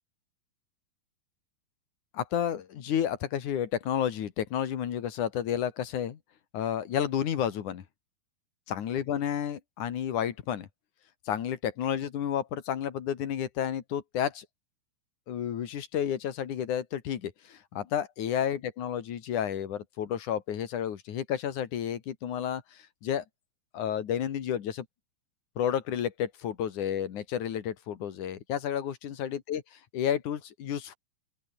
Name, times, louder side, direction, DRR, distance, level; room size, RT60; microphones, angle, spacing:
voice 1, 2.1-6.2 6.5-7.8 8.7-10.7 11.3-14.4 15.3-23.2 23.7-24.9 25.6-30.9, left 9 dB, 60° left, 3.0 m, -31 dB
open air
omnidirectional pair, 4.5 m